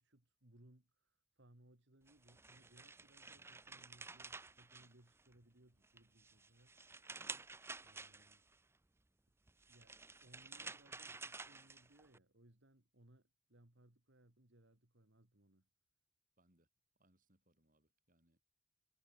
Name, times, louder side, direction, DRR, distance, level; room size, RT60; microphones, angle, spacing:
voice 1, 0.0-8.4 9.7-9.9 10.2-15.7, right 1 dB, 55° right, 2.5 m, -67 dB
sound 1, 2.1-5.4 5.8-8.6 9.5-12.2, right 4 dB, 10° right, 0.5 m, -52 dB
voice 2, 16.4-16.7 17.0-18.4, right 1 dB, 40° right, 6.4 m, -76 dB
head